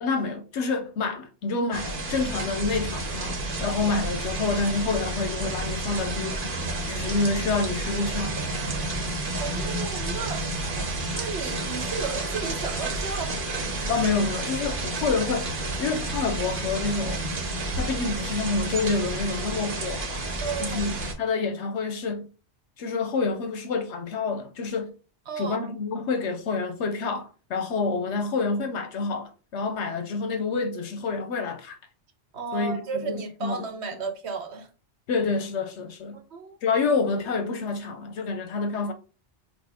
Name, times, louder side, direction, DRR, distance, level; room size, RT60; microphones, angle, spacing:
voice 1, 0.0-6.5 6.9-8.8 13.9-15.5 15.8-17.3 17.8-22.3 22.8-24.9 25.4-31.8 32.5-33.6 35.1-36.2 36.6-38.9, left 4 dB, 80° left, 1.0 m, -28 dB
sound 1, 1.7-21.1, right 2 dB, 50° right, 1.1 m, -30 dB
voice 2, 9.4-10.5 11.1-13.4 20.4-20.8 25.3-25.7 32.3-34.7 36.1-36.6, right 5 dB, 75° right, 1.2 m, -34 dB
6.0 x 2.5 x 3.5 m
omnidirectional pair, 1.2 m